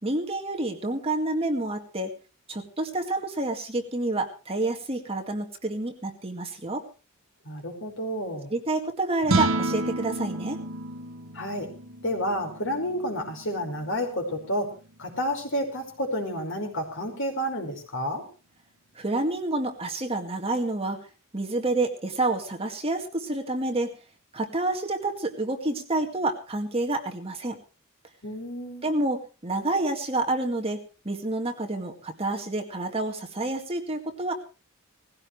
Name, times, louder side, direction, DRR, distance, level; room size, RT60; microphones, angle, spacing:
voice 1, 0.0-2.1 2.5-6.9 8.5-10.6 19.0-21.0 21.3-24.0 24.3-27.6 28.8-34.3, right 2 dB, 30° right, 3 dB, 2.1 m, -28 dB
voice 2, 7.4-8.5 11.3-11.7 12.0-14.7 15.0-18.2 28.2-28.9, equal, 60° left, 3 dB, 5.1 m, -30 dB
sound 1, 9.2-15.6, right 2 dB, 70° right, 1.7 m, -32 dB
19.5 x 16.0 x 3.3 m, 0.34 s
head